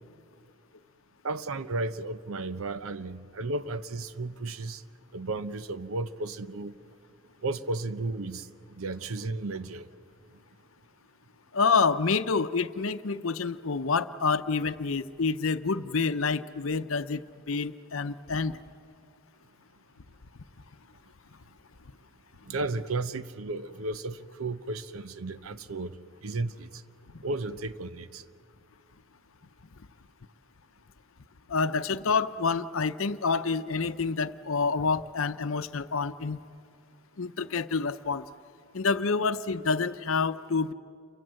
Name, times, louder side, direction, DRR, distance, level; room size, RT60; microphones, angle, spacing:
voice 1, 1.2-4.8 5.1-6.7 7.4-8.5 8.8-9.9 22.4-25.9 26.2-26.8 27.2-28.2, right 2 dB, 85° right, 0.8 m, -34 dB
voice 2, 11.5-17.2 17.5-18.5 31.5-36.4 37.2-38.2 38.7-40.7, left 4 dB, 70° left, 0.7 m, -28 dB
29.0 x 23.5 x 7.7 m
head